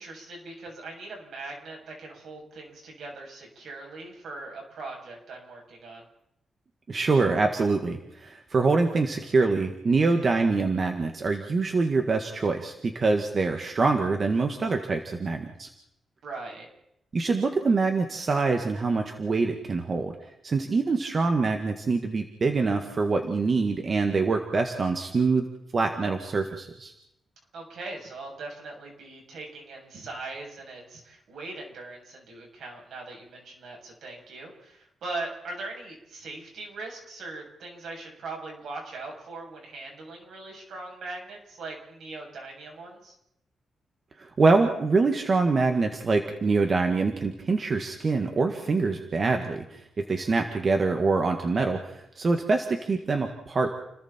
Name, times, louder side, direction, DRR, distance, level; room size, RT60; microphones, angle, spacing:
voice 1, 0.0-6.0 16.2-16.7 27.5-43.1, right 3 dB, 75° right, 0 dB, 7.9 m, -40 dB
voice 2, 6.9-15.7 17.1-20.1 20.4-25.5 25.7-26.9 44.2-53.7, right 3 dB, 35° right, 4 dB, 1.8 m, -25 dB
30.0 x 21.0 x 4.5 m, 0.81 s
wide cardioid pair, 155°, 0 cm